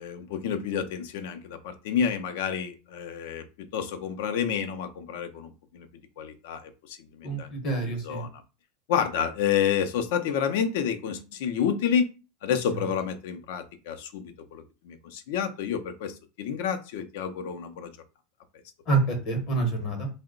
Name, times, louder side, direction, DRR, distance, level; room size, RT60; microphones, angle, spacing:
voice 1, 0.0-5.9 6.2-7.5 8.0-8.3 8.9-12.1 12.4-17.9, left 8 dB, 65° left, 9 dB, 0.5 m, -29 dB
voice 2, 7.2-8.3 18.9-20.1, right 3 dB, 35° left, 5 dB, 0.8 m, -27 dB
2.8 x 2.0 x 3.7 m, 0.32 s
supercardioid pair, 170°, 0 cm